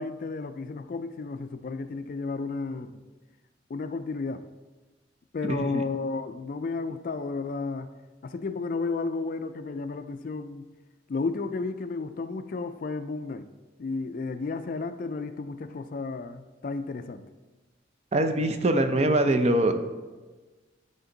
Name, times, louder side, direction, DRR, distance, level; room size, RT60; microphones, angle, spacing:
voice 1, 0.0-3.0 3.7-4.4 5.3-7.9 8.2-10.7 11.1-13.5 13.8-17.2, left 3 dB, 45° left, 10 dB, 0.3 m, -32 dB
voice 2, 5.5-5.8 18.1-19.8, right 1 dB, 35° right, 7 dB, 0.5 m, -23 dB
9.7 x 4.4 x 3.9 m, 1.3 s
head